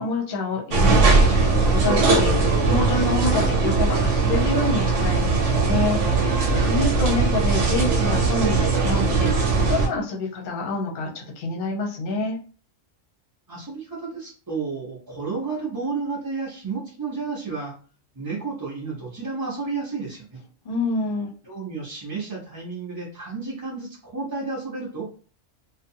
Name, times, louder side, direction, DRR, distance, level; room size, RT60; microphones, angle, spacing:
voice 1, 0.0-12.4 20.6-21.3, left 3 dB, 50° left, -1 dB, 0.8 m, -27 dB
sound 1, 0.7-9.9, right 4 dB, 70° right, 1.0 m, -20 dB
voice 2, 13.5-17.7 18.1-20.4 21.4-25.1, right 4 dB, 25° right, -5 dB, 0.5 m, -31 dB
2.6 x 2.3 x 2.7 m, 0.39 s
omnidirectional pair, 1.4 m